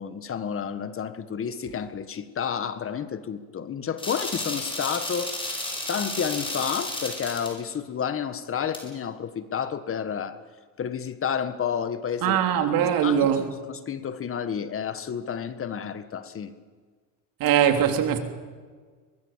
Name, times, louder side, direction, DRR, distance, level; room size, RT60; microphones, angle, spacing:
voice 1, 0.0-5.4 5.9-10.4 10.8-12.7 13.0-16.5, left 7 dB, 35° left, 1.5 m, -30 dB
sound 1, 4.0-7.5 8.7-8.8, left 1 dB, 15° left, 7.8 m, -32 dB
voice 2, 12.2-13.5 17.4-18.2, right 9 dB, 60° right, 3.2 m, -21 dB
24.0 x 20.5 x 7.4 m
cardioid pair, 115°, 38 cm